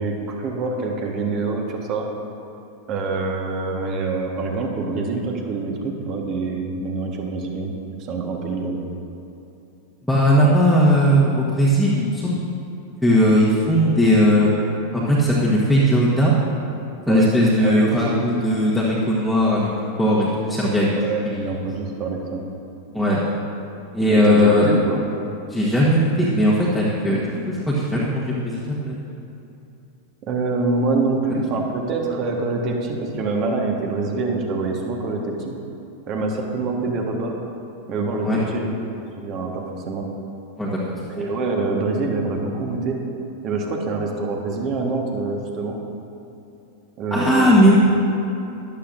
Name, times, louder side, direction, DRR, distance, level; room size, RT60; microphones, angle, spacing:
voice 1, 0.0-2.1 2.9-7.7 8.0-8.8 17.1-17.3 17.6-18.2 21.0-22.4 24.1-25.0 27.1-27.2 30.2-35.5 36.1-37.3 37.9-40.1 41.1-43.0 43.4-45.8 47.0-47.6, right 3 dB, 35° right, 1 dB, 1.5 m, -25 dB
voice 2, 10.1-12.4 13.0-14.5 14.9-16.3 17.1-19.7 20.0-20.9 21.2-21.4 22.9-23.2 23.9-24.7 25.5-27.2 27.5-29.0 38.2-38.4 40.6-40.8 47.1-47.7, equal, ahead, -9 dB, 1.5 m, -18 dB
14.0 x 11.5 x 2.6 m, 2.8 s
figure-of-eight pair, 90°, 0 cm